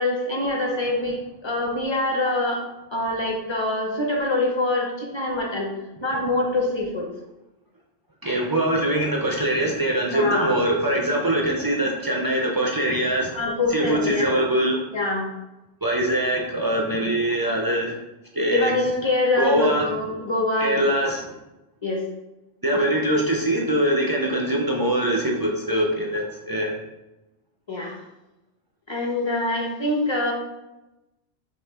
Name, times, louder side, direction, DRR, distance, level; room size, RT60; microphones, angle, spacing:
voice 1, 0.0-2.6 2.9-5.7 6.0-7.1 10.1-10.5 13.3-14.3 14.9-15.3 18.5-20.9 21.8-22.0 22.7-22.8 27.7-28.0 28.9-30.3, left 2 dB, 30° left, -1 dB, 0.8 m, -24 dB
voice 2, 8.2-13.4 13.7-14.8 15.8-17.9 18.3-18.7 19.4-19.9 20.6-21.3 22.6-26.7, right 1 dB, 30° right, -1 dB, 0.4 m, -23 dB
6.2 x 2.4 x 3.5 m, 0.98 s
omnidirectional pair, 1.1 m